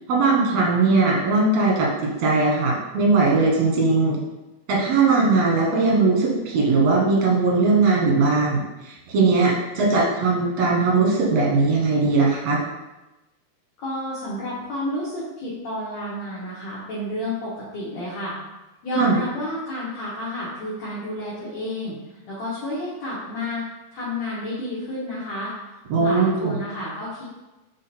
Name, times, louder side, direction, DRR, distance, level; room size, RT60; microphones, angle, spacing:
voice 1, 0.1-4.2 4.7-12.6 18.9-19.2 25.9-26.5, right 3 dB, 65° right, -3 dB, 1.7 m, -19 dB
voice 2, 13.8-18.4 18.8-23.6 23.9-25.5 26.0-27.2, left 1 dB, 70° left, -8 dB, 1.6 m, -31 dB
6.2 x 3.6 x 4.3 m, 1.1 s
omnidirectional pair, 4.8 m